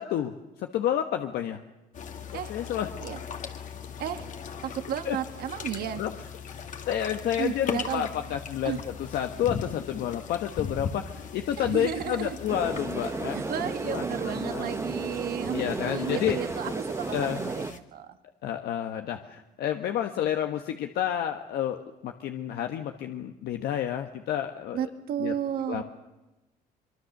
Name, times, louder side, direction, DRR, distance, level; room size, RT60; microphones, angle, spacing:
voice 1, 0.0-1.6 2.3-2.9 5.0-5.2 6.0-6.1 6.9-13.5 13.8-14.7 15.5-16.4 17.1-17.4 18.4-24.8 25.2-25.3 25.7-25.8, left 10 dB, 75° left, 5 dB, 1.3 m, -30 dB
sound 1, 1.9-17.8, left 7 dB, 50° left, 2.0 m, -39 dB
voice 2, 4.0-4.3 4.6-6.0 7.4-8.1 8.6-8.8 11.6-12.4 13.3-18.2 24.7-25.8, right 9 dB, 65° right, 8 dB, 1.6 m, -33 dB
sound 2, 12.5-17.7, right 3 dB, 15° right, 0.7 m, -33 dB
23.5 x 23.5 x 6.7 m, 1.1 s
cardioid pair, 110°, 17 cm